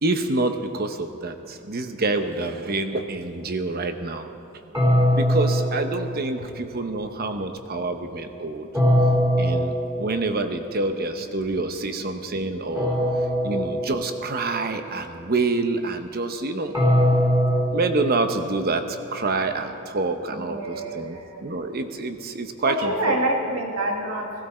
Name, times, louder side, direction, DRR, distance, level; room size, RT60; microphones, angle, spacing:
voice 1, 0.0-4.3 5.2-8.7 9.4-13.0 13.4-16.8 17.7-23.2, right 3 dB, 45° right, 7 dB, 0.9 m, -27 dB
sound 1, 4.7-6.8 8.7-10.6 12.7-14.6 16.7-18.9, equal, 15° right, 3.9 m, -22 dB
voice 2, 20.3-21.4 22.7-24.3, right 1 dB, 75° right, 0 dB, 2.3 m, -27 dB
17.0 x 16.0 x 4.4 m, 2.6 s
head